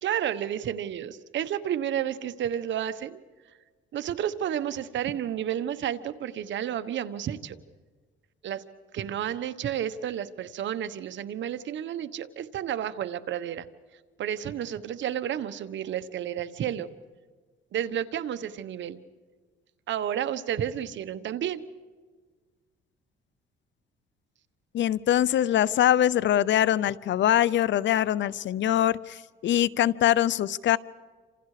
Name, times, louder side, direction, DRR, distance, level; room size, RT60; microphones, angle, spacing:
voice 1, 0.0-3.2 3.9-7.6 8.4-8.6 8.9-13.7 14.2-16.9 17.7-19.0 19.9-21.6, right 10 dB, 70° right, 12 dB, 1.2 m, -31 dB
voice 2, 24.7-30.8, left 11 dB, 65° left, 20 dB, 0.7 m, -23 dB
28.5 x 27.0 x 5.0 m, 1.5 s
cardioid pair, 90°, 20 cm